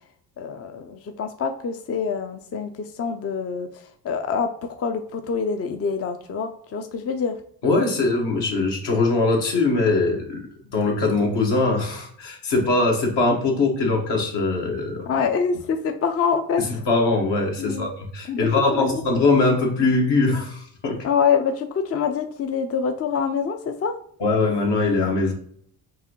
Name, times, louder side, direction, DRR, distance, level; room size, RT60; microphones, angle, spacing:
voice 1, 0.4-3.7 4.0-4.5 4.8-7.3 15.1-16.8 17.6-17.9 18.3-19.0 21.0-23.9, left 6 dB, 35° left, 6 dB, 0.5 m, -25 dB
voice 2, 7.6-15.1 16.8-21.1 24.2-25.3, left 3 dB, 70° left, 0 dB, 1.5 m, -21 dB
4.7 x 2.7 x 2.9 m, 0.63 s
supercardioid pair, 65°, 43 cm